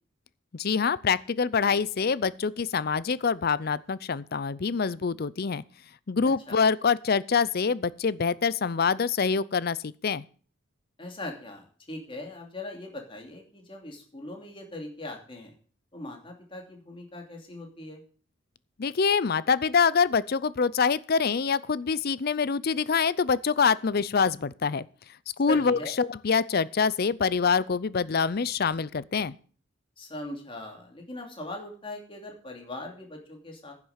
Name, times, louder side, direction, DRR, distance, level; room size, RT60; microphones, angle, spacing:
voice 1, 0.5-5.6 6.1-10.2 18.8-24.9 25.4-29.3, left 5 dB, 50° left, 0.5 m, -25 dB
voice 2, 11.0-15.5 15.9-18.0 25.5-25.9 30.0-33.7, left 1 dB, 25° left, 2.8 m, -40 dB
10.5 x 7.3 x 8.1 m
head